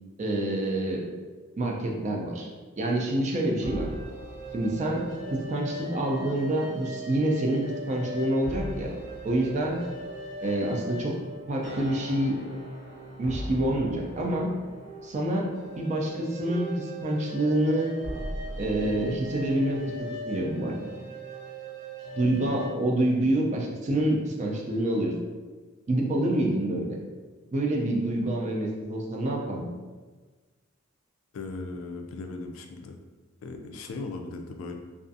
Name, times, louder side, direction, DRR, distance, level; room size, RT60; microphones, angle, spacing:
voice 1, 0.2-1.0 1.6-2.5 2.8-3.9 4.5-8.9 9.2-9.8 10.4-11.2 11.5-12.4 13.2-14.5 15.0-15.5 15.8-17.9 18.6-20.7 22.2-25.1 25.9-27.0 27.5-29.6, right 1 dB, 35° right, 0 dB, 0.4 m, -27 dB
sound 1, 3.2-22.7, right 1 dB, 55° right, 0.8 m, -39 dB
voice 2, 31.3-33.0 33.4-34.8, left 3 dB, 75° left, 4 dB, 0.3 m, -37 dB
2.4 x 2.4 x 2.6 m, 1.4 s
head